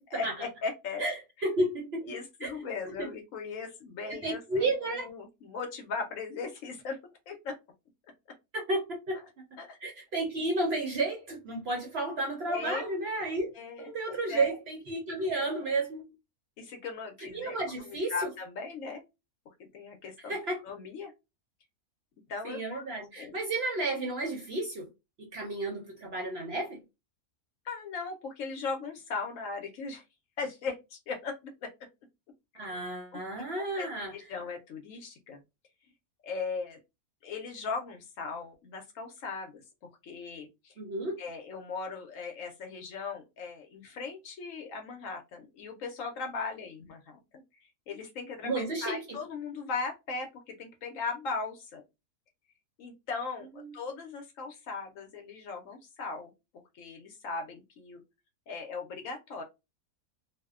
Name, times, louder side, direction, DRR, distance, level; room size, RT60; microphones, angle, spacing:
voice 1, 0.1-1.0 1.4-1.5 2.0-7.0 7.3-7.6 9.1-9.2 9.6-9.8 12.5-12.9 13.5-14.6 15.3-15.7 16.6-19.0 19.6-20.3 20.6-21.1 22.3-22.9 23.2-23.4 27.6-30.0 30.4-31.7 33.1-33.2 33.6-35.4 36.2-36.8 37.2-39.6 40.0-40.8 41.2-51.8 52.8-56.3 56.7-58.0 58.5-59.4, left 4 dB, 70° left, 0.9 m, -38 dB
voice 2, 1.4-2.1 2.4-2.5 3.0-3.1 4.1-5.1 8.5-9.2 9.8-13.5 13.8-16.0 17.3-18.1 20.3-20.6 22.4-24.9 25.2-26.8 32.5-34.1 40.8-41.2 48.4-49.0 53.7-53.8, right 2 dB, 60° right, 0.7 m, -32 dB
2.6 x 2.1 x 2.3 m
omnidirectional pair, 1.6 m